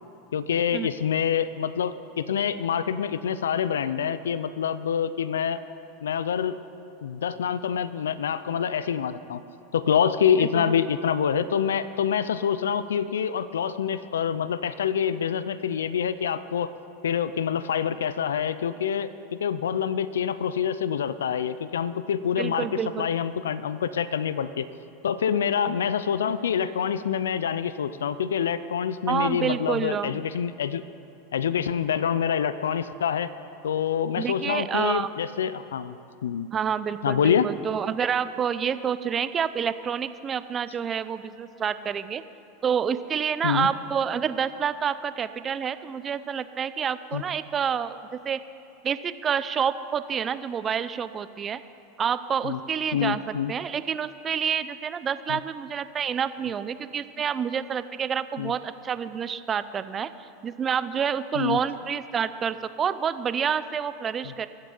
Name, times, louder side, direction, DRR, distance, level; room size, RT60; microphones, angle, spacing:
voice 1, 0.3-5.6 6.0-6.6 7.0-9.4 9.7-16.7 17.0-19.1 19.4-24.7 25.0-30.8 31.3-33.3 33.6-36.5 37.0-37.5 43.4-43.7 47.1-47.2 52.4-52.6 52.9-53.5 55.3-55.4 58.4-58.5 61.3-61.6 64.2-64.3, left 8 dB, 90° left, 14 dB, 0.5 m, -26 dB
voice 2, 10.4-10.7 22.4-23.1 29.1-30.2 34.2-35.1 36.5-42.2 42.6-48.4 48.8-51.6 52.0-53.2 53.5-64.5, right 7 dB, 30° right, 13 dB, 0.6 m, -28 dB
21.5 x 7.5 x 5.5 m, 2.8 s
hypercardioid pair, 110°, 0 cm